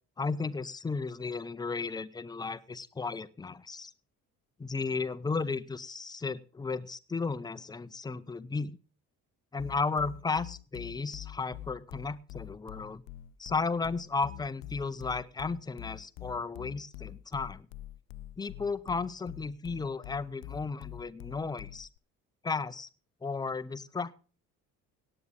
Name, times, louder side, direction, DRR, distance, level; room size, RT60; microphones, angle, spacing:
voice 1, 0.2-3.9 4.6-8.8 9.5-13.0 13.4-17.7 18.4-21.9 22.4-22.9 23.2-24.1, left 4 dB, 10° left, 14 dB, 0.6 m, -34 dB
sound 1, 9.6-22.0, left 14 dB, 50° left, 0.6 m, -45 dB
17.5 x 8.8 x 3.7 m, 0.37 s
figure-of-eight pair, 45°, 43 cm